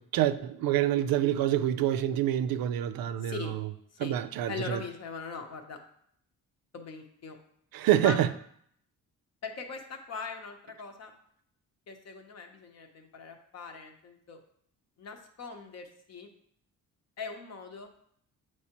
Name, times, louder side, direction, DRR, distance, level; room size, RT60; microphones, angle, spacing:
voice 1, 0.0-3.7 4.0-4.8 7.7-8.3, right 11 dB, 85° right, 0.5 m, -27 dB
voice 2, 3.2-3.5 4.0-4.1 4.5-5.8 6.7-7.4 8.0-8.2 9.4-11.1 11.9-14.4 15.0-16.3 17.2-17.9, left 5 dB, 50° left, 0.9 m, -41 dB
8.3 x 4.6 x 2.9 m
cardioid pair, 160°, 34 cm